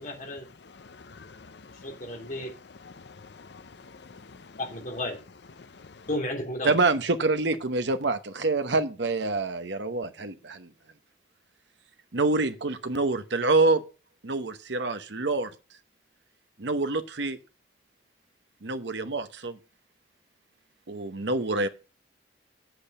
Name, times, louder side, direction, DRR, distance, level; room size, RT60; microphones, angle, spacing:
voice 1, 0.0-0.4 1.8-2.5 4.6-5.1 6.1-6.7, left 1 dB, 45° left, 3.1 m, -33 dB
voice 2, 0.6-4.6 5.6-6.1, left 4 dB, 65° left, 0.7 m, -49 dB
voice 3, 6.6-10.7 12.1-13.8 14.2-15.5 16.6-17.4 18.6-19.6 20.9-21.7, right 3 dB, 70° right, 1.0 m, -26 dB
8.9 x 8.0 x 5.4 m
head